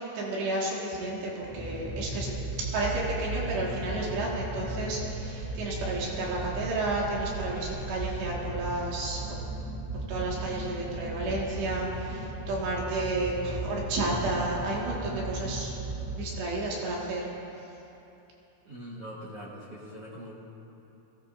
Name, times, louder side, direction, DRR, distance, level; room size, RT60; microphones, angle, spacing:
voice 1, 0.1-9.4 10.1-15.7 16.1-17.3, right 2 dB, 80° right, -4 dB, 4.0 m, -32 dB
sound 1, 1.4-16.8, right 2 dB, 15° right, 0.3 m, -36 dB
voice 2, 18.6-20.5, equal, 65° right, -7 dB, 1.5 m, -42 dB
22.0 x 17.0 x 2.6 m, 3.0 s
omnidirectional pair, 4.8 m